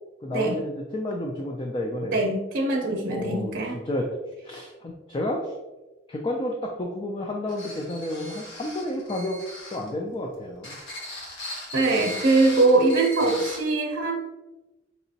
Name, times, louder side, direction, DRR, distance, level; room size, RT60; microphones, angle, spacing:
voice 1, 0.2-2.3 3.1-3.5 3.9-4.1 4.4-5.5 6.1-9.4 9.7-10.8 13.3-13.4, left 1 dB, 25° left, 0 dB, 0.4 m, -31 dB
voice 2, 2.1-3.8 11.7-14.1, right 2 dB, 65° right, 0 dB, 0.7 m, -22 dB
sound 1, 7.5-9.9 10.6-13.6, left 1 dB, 80° left, 1.1 m, -38 dB
5.3 x 2.9 x 2.7 m, 1.1 s
head